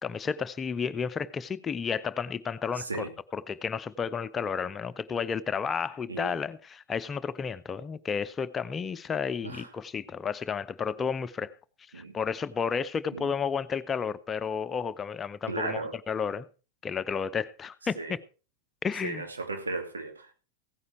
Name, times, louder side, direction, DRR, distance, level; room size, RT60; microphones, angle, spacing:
voice 1, 0.0-11.5 11.9-16.5 16.8-18.2 18.8-19.2, left 6 dB, 20° left, 0.8 m, -32 dB
voice 2, 2.8-3.1 6.1-6.3 9.4-9.7 11.9-12.2 13.1-13.3 15.4-15.9 17.9-18.1 19.0-20.3, right 3 dB, 75° right, 2.8 m, -35 dB
16.5 x 9.7 x 4.5 m
figure-of-eight pair, 90°, 0 cm